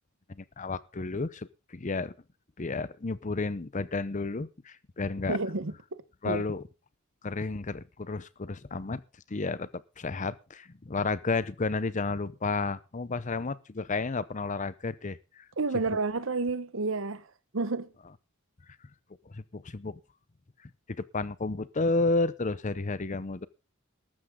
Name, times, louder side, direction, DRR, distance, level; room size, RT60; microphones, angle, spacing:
voice 1, 0.3-2.1 2.6-5.4 6.2-6.6 7.2-9.0 9.3-9.7 10.0-15.4 19.3-20.0 21.1-23.5, left 3 dB, 35° left, 0.7 m, -31 dB
voice 2, 5.3-6.4 15.6-17.2 17.5-17.9, right 3 dB, 65° right, 1.0 m, -30 dB
14.0 x 12.5 x 3.7 m
head